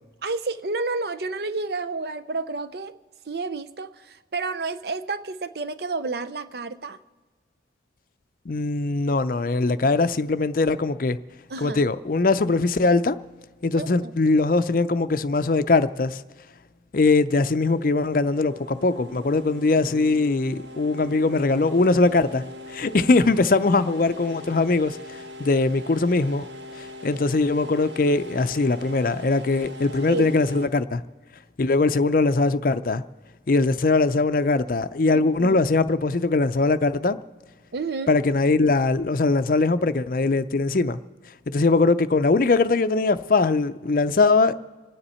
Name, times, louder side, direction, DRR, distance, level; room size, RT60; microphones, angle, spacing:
voice 1, 0.2-3.0 3.3-7.0 11.5-11.8 13.7-14.1 30.1-30.3 35.1-35.6 37.7-38.1, right 3 dB, 55° right, 0.6 m, -30 dB
voice 2, 8.5-11.2 11.6-13.2 13.6-16.2 16.9-26.5 26.7-31.0 31.6-33.0 33.5-37.2 38.1-41.0 41.3-44.5, left 3 dB, 50° left, 0.5 m, -21 dB
sound 1, 17.6-30.7, left 2 dB, 75° right, 1.3 m, -41 dB
27.0 x 9.8 x 4.3 m
head